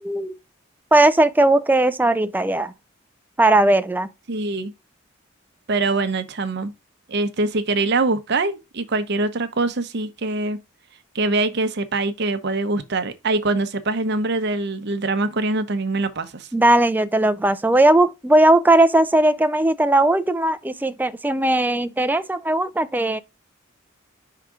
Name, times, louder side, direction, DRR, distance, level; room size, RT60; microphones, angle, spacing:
voice 1, 0.0-0.3 0.9-2.7 3.4-4.1 16.5-23.2, right 1 dB, 10° right, 0.4 m, -18 dB
voice 2, 4.3-4.7 5.7-6.7 7.1-10.6 11.1-16.5, right 3 dB, 60° right, 0.8 m, -23 dB
5.7 x 3.6 x 4.9 m
head